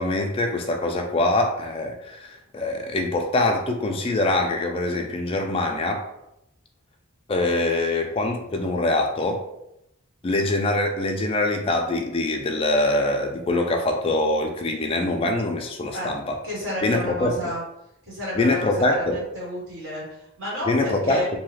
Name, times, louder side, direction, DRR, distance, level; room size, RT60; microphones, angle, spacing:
voice 1, 0.0-6.1 7.3-9.4 10.2-16.4 16.8-17.3 18.4-19.2 20.7-21.2, left 2 dB, 25° left, 3 dB, 0.3 m, -24 dB
voice 2, 16.4-17.6 18.0-21.3, left 1 dB, 60° right, -7 dB, 1.4 m, -31 dB
2.7 x 2.3 x 3.1 m, 0.84 s
head